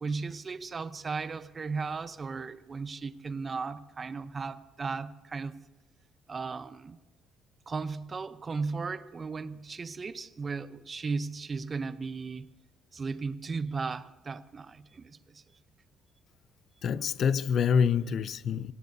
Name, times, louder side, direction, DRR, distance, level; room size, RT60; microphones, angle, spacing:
voice 1, 0.0-5.6 6.3-7.0 7.7-12.5 12.9-15.4, right 4 dB, 35° right, 0.8 m, -36 dB
voice 2, 16.8-18.7, left 7 dB, 60° left, 0.6 m, -26 dB
26.0 x 18.0 x 2.8 m
supercardioid pair, 75°, 0 cm